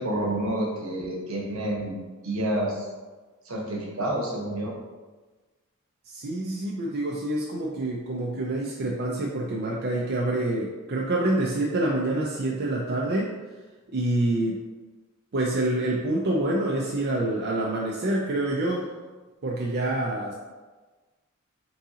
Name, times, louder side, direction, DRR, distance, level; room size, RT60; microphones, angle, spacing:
voice 1, 0.0-2.0 2.2-2.8 3.4-4.7, right 1 dB, 75° right, -2 dB, 1.0 m, -29 dB
voice 2, 6.1-13.3 13.9-14.6 15.3-18.9 19.4-20.3, right 1 dB, 50° right, -3 dB, 0.4 m, -27 dB
3.8 x 2.8 x 3.6 m, 1.3 s
head